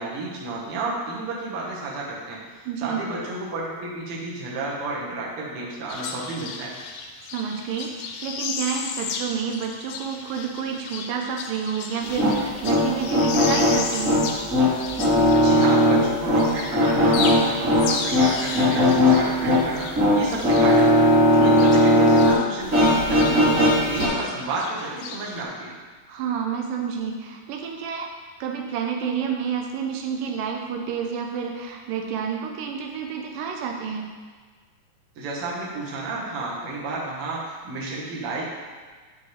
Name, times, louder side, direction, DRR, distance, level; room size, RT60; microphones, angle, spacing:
voice 1, 0.0-6.7 15.3-21.1 21.4-25.7 35.1-38.4, right 2 dB, 55° right, -4 dB, 1.7 m, -31 dB
voice 2, 2.7-3.0 7.3-14.3 21.3-21.8 26.1-28.1 28.4-34.1, right 7 dB, 85° right, 2 dB, 2.3 m, -29 dB
sound 1, 5.9-16.1 16.4-22.5 22.7-25.4, left 5 dB, 90° left, 2.4 m, -34 dB
sound 2, 12.0-22.3 22.6-24.1, left 1 dB, 25° right, 2.3 m, -19 dB
8.7 x 5.4 x 3.2 m, 1.5 s
omnidirectional pair, 3.9 m